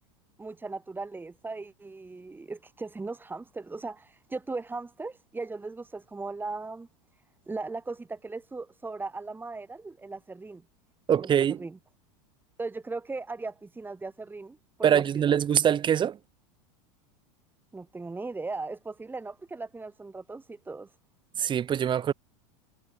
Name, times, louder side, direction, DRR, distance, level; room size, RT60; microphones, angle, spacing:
voice 1, 0.4-6.9 7.5-10.6 11.2-11.3 11.6-11.8 12.6-15.3 17.7-20.9, right 3 dB, 10° right, 3.1 m, -38 dB
voice 2, 11.1-11.6 14.8-16.2 21.4-22.1, right 9 dB, 25° right, 1.1 m, -23 dB
hypercardioid pair, 110°, 17 cm